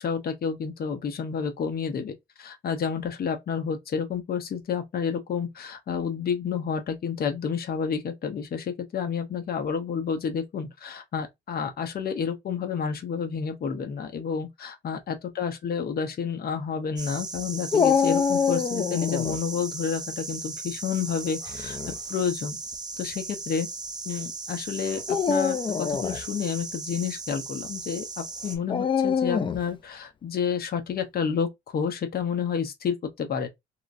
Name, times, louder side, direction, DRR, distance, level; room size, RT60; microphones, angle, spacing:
voice 1, 0.0-21.8 22.1-22.6 23.0-23.7 24.1-33.5, left 6 dB, 50° left, 0.7 m, -30 dB
sound 1, 17.0-28.6, right 3 dB, 20° right, 0.6 m, -37 dB
Dog, 17.7-19.4 21.5-21.9 22.7-22.8 25.0-26.2 28.7-29.7, left 6 dB, 25° left, 0.3 m, -25 dB
2.9 x 2.4 x 2.5 m
cardioid pair, 90°, 20 cm